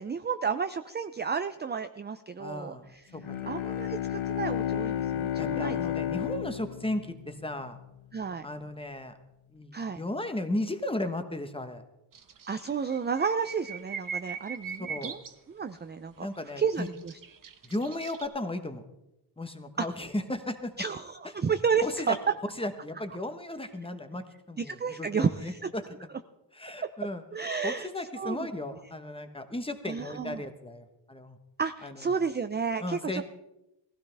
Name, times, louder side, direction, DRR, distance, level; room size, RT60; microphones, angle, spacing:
voice 1, 0.0-3.0 3.5-5.8 8.1-8.5 9.7-10.0 12.5-15.2 15.5-16.3 16.6-17.1 19.8-19.9 20.8-22.2 24.6-25.7 27.3-27.9 28.2-28.5 29.9-30.4 31.6-33.2, right 6 dB, 25° right, 9 dB, 0.4 m, -31 dB
voice 2, 2.4-3.9 5.4-7.8 8.4-9.1 9.5-11.8 14.7-15.2 16.2-16.9 17.6-18.8 19.4-20.7 21.8-22.2 22.6-25.8 26.5-27.2 27.6-31.4 31.8-32.1 32.8-33.2, left 1 dB, 10° left, 8 dB, 1.0 m, -35 dB
Bowed string instrument, 3.1-8.0, left 10 dB, 80° left, 1.2 m, -32 dB
sound 1, 12.1-12.7 12.9-15.3 16.4-18.3, right 6 dB, 40° right, 1.0 m, -39 dB
18.5 x 15.5 x 3.4 m, 0.92 s
wide cardioid pair, 155°, 48 cm